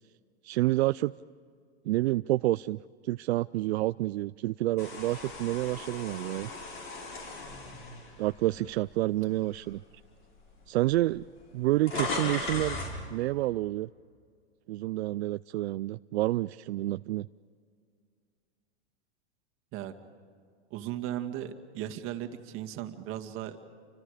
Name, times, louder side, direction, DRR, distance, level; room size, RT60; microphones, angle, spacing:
voice 1, 0.4-1.1 1.9-6.5 8.2-9.8 10.7-11.2 11.5-12.8 13.1-13.9 14.7-17.3, right 17 dB, 70° right, 14 dB, 0.5 m, -29 dB
sound 1, 4.8-9.0 9.5-9.7 10.6-10.7 10.9-13.0, left 3 dB, 35° left, 6.9 m, -37 dB
voice 2, 20.7-23.6, right 12 dB, 40° right, 6 dB, 2.1 m, -36 dB
30.0 x 25.0 x 5.0 m, 2.1 s
hypercardioid pair, 125°, 34 cm